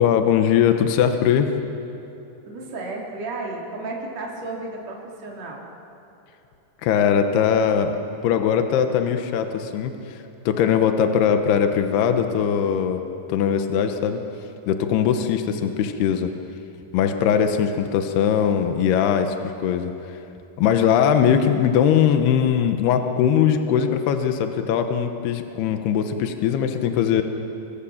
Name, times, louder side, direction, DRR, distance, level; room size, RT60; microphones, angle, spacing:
voice 1, 0.0-1.5 6.8-7.9 8.2-10.2 10.5-13.0 13.3-14.2 14.7-16.3 16.9-20.2 20.6-27.2, left 8 dB, 80° left, 6 dB, 3.1 m, -20 dB
voice 2, 2.5-5.6, right 2 dB, 45° right, -2 dB, 4.1 m, -33 dB
29.0 x 23.5 x 7.2 m, 2.9 s
omnidirectional pair, 4.6 m